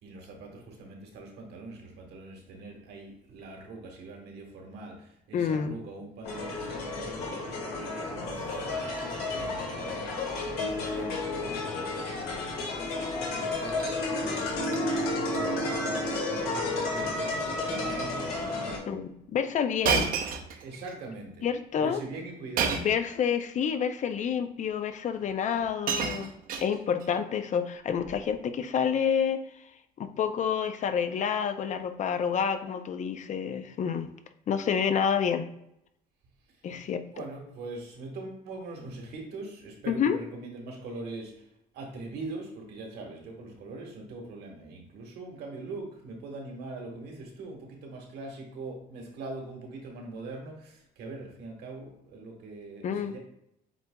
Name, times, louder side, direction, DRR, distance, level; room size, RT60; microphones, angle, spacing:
voice 1, 0.0-19.0 20.6-21.4 21.8-22.9 36.7-41.4 41.7-53.2, right 3 dB, 75° right, 1 dB, 1.4 m, -42 dB
voice 2, 5.3-5.8 18.9-20.2 21.4-22.0 22.7-26.3 26.6-29.4 30.0-34.1 34.5-35.5 36.6-37.2 39.9-40.2 52.8-53.2, left 7 dB, 45° left, 9 dB, 0.5 m, -28 dB
sound 1, 6.2-18.8, left 2 dB, 70° left, 1.7 m, -32 dB
Shatter, 13.5-14.0 14.3-14.8 15.1-15.4 15.7-15.8 16.6-16.9 17.2-17.5 18.2-18.3 19.8-21.0 22.6-23.1 24.1-24.2 25.2-25.3 25.6-27.1 28.0-28.3, right 6 dB, 60° right, 0.6 m, -31 dB
8.0 x 2.9 x 2.2 m, 0.79 s
cardioid pair, 110°, 17 cm